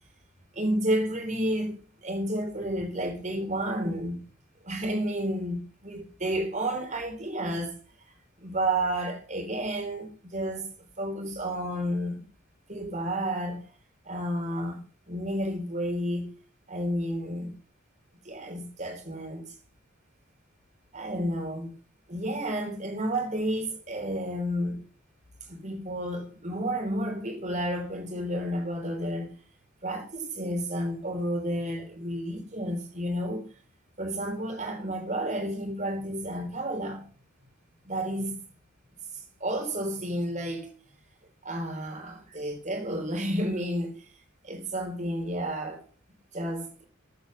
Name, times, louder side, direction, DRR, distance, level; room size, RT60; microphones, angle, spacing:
voice 1, 0.5-4.2 4.6-7.8 8.4-10.7 11.0-12.2 12.7-13.6 14.1-16.3 16.7-17.5 18.2-19.6 20.9-21.7 22.1-24.8 25.5-29.4 29.8-33.5 34.0-37.0 37.8-38.4 39.4-40.7 41.4-44.0 44.4-45.8 46.3-46.8, right 1 dB, 35° right, 3.9 m, -31 dB
14.0 x 8.5 x 6.8 m
head